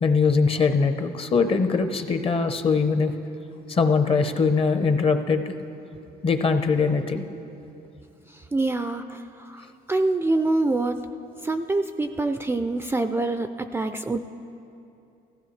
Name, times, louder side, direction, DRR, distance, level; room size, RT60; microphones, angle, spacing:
voice 1, 0.0-3.1 3.7-5.5 6.2-7.3, left 4 dB, 35° left, 8 dB, 0.7 m, -22 dB
voice 2, 8.3-11.0 11.4-14.2, right 2 dB, 15° right, 8 dB, 0.3 m, -26 dB
17.0 x 15.0 x 3.2 m, 2.8 s
cardioid pair, 110°, 17 cm